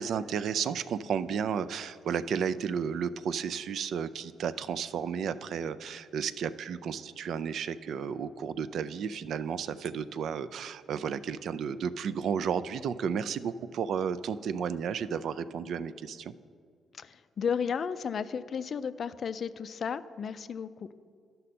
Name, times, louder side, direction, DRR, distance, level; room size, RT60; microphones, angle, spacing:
voice 1, 0.0-16.3, right 7 dB, 70° right, 15 dB, 0.3 m, -33 dB
voice 2, 16.9-20.9, left 6 dB, 50° left, 14 dB, 0.3 m, -33 dB
12.5 x 5.4 x 4.2 m, 2.2 s
cardioid pair, 90°, 0 cm